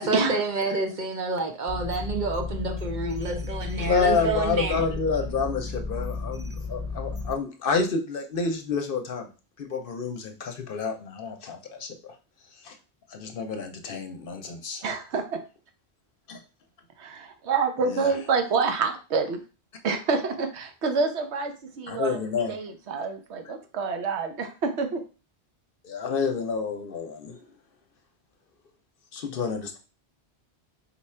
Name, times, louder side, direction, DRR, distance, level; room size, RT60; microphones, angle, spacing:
voice 1, 0.0-4.8, right 3 dB, 50° right, 0.8 m, -28 dB
sound 1, 1.7-7.3, left 3 dB, 20° right, 0.4 m, -33 dB
voice 2, 3.8-9.3 9.6-12.1 12.6-12.7 13.1-14.8 16.3-16.4 17.8-18.1 21.9-22.6 25.8-27.4 29.1-29.8, left 5 dB, 60° left, 0.8 m, -29 dB
voice 3, 14.8-15.4 17.0-19.4 19.8-22.2 22.5-25.0, right 4 dB, 80° right, 1.0 m, -27 dB
4.1 x 2.3 x 4.2 m
omnidirectional pair, 1.1 m